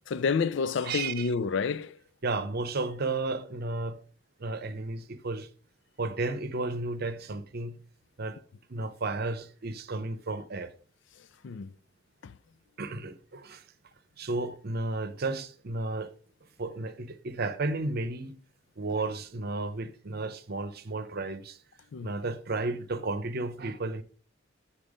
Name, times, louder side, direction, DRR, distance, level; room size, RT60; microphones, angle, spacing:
voice 1, 0.1-2.0 11.2-11.7 12.2-12.3 21.9-22.1, left 5 dB, 60° left, 0.4 m, -29 dB
voice 2, 0.8-1.3 2.2-4.0 4.4-5.5 6.0-7.8 8.2-8.4 8.7-10.7 12.8-13.6 14.2-16.1 16.6-18.4 18.8-21.6 22.0-24.0, right 3 dB, 50° right, 0.7 m, -33 dB
9.0 x 4.3 x 5.0 m
head